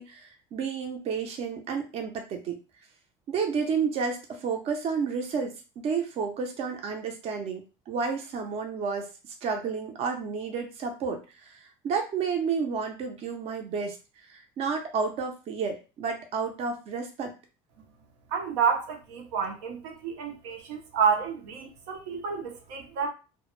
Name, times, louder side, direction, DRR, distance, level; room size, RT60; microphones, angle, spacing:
voice 1, 0.0-2.6 3.3-9.1 9.4-14.0 14.3-17.3, right 5 dB, 50° right, 3 dB, 0.6 m, -31 dB
voice 2, 18.3-23.1, right 6 dB, 90° right, 2 dB, 0.7 m, -29 dB
2.1 x 2.1 x 3.1 m, 0.31 s
cardioid pair, 120°, 14 cm